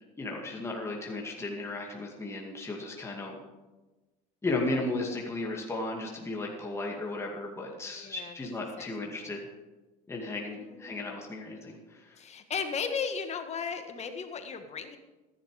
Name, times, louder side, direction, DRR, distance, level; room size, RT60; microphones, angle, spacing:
voice 1, 0.2-3.4 4.4-9.5 10.1-12.2, left 2 dB, 15° left, -1 dB, 2.3 m, -35 dB
voice 2, 7.9-8.4 8.8-8.9 9.2-9.4 10.5-11.0 12.1-15.0, left 6 dB, 35° left, 7 dB, 1.6 m, -36 dB
14.0 x 10.5 x 5.0 m, 1.2 s
supercardioid pair, 110°, 20 cm